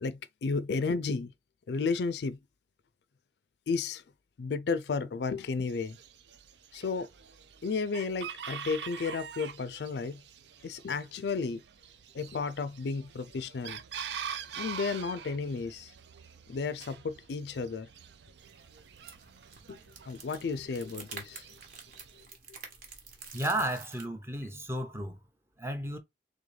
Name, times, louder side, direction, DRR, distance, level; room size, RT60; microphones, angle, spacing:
voice 1, 0.0-1.3 1.7-2.4 3.7-4.0 4.4-6.0 6.7-7.1 7.6-10.2 10.6-11.6 12.1-13.8 14.6-15.9 16.5-17.9 19.7-19.8 20.1-21.6, left 4 dB, 65° left, 0.4 m, -33 dB
Chicken rooster, 5.7-22.3, right 7 dB, 70° right, 0.5 m, -45 dB
sound 1, 18.4-24.0, right 5 dB, 50° right, 1.3 m, -49 dB
voice 2, 23.3-25.2 25.6-26.0, right 1 dB, 15° right, 0.8 m, -33 dB
3.8 x 3.4 x 3.2 m
head